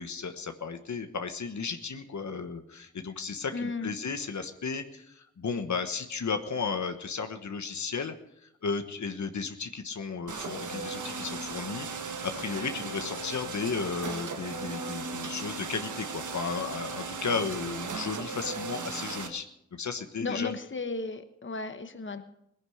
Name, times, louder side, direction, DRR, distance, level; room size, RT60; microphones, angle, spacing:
voice 1, 0.0-8.1 8.4-11.9 12.2-19.5 19.7-20.6, left 5 dB, 75° left, 8 dB, 1.2 m, -34 dB
voice 2, 3.5-3.9 20.2-22.2, left 3 dB, 40° left, 9 dB, 1.2 m, -34 dB
sound 1, 10.3-19.3, right 4 dB, 90° right, 1.4 m, -37 dB
18.5 x 10.5 x 6.5 m, 0.79 s
wide cardioid pair, 65°, 29 cm